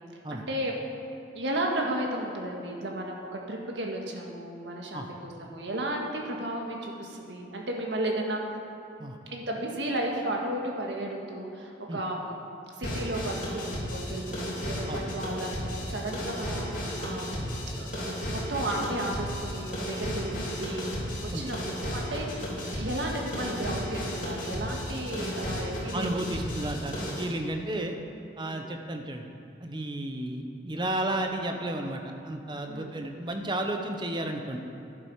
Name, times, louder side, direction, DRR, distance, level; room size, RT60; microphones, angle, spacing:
voice 1, 0.3-0.7 1.3-8.4 9.3-12.3 12.8-20.9 21.2-26.2 28.4-28.6 32.7-33.0, right 1 dB, 80° right, 0 dB, 1.7 m, -34 dB
sound 1, 12.8-27.3, equal, 50° left, 3.2 m, -34 dB
voice 2, 25.9-28.0 28.4-29.3 29.6-34.6, right 1 dB, 25° right, 4 dB, 0.9 m, -33 dB
11.0 x 11.0 x 4.8 m, 2.9 s
head